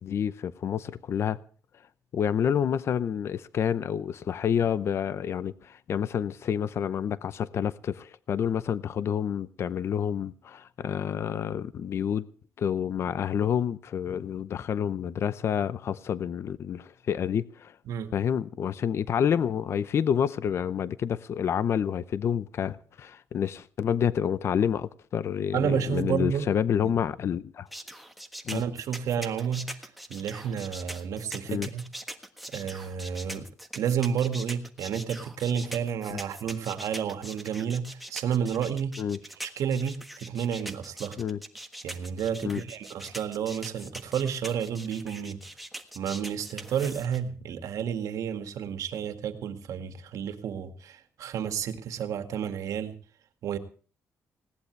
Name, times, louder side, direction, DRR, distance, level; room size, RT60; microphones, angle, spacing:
voice 1, 0.0-1.4 2.1-12.3 12.6-17.7 18.1-27.7 28.4-28.6 31.5-31.7 36.1-36.2 39.0-39.2 41.2-41.4 42.4-42.6, left 8 dB, 50° left, 0.7 m, -28 dB
voice 2, 25.5-26.5 26.8-26.9 28.5-29.8 30.1-31.8 32.5-33.5 33.7-39.0 39.4-41.2 41.8-45.5 46.0-52.9 53.4-53.6, right 8 dB, 75° right, 2.0 m, -31 dB
sound 1, 27.7-47.2, right 1 dB, ahead, 1.5 m, -42 dB
20.0 x 17.5 x 3.3 m
cardioid pair, 155°, 6 cm